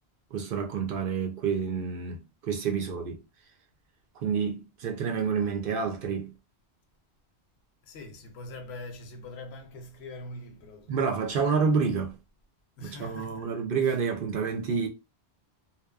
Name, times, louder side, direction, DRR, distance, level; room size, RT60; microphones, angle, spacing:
voice 1, 0.3-3.2 4.2-6.3 10.9-12.2 12.8-14.9, right 6 dB, 60° right, 0.7 m, -28 dB
voice 2, 7.8-11.3 12.8-13.5 13.8-13.9, left 2 dB, 75° left, 0.8 m, -43 dB
2.7 x 2.1 x 2.3 m
omnidirectional pair, 1.1 m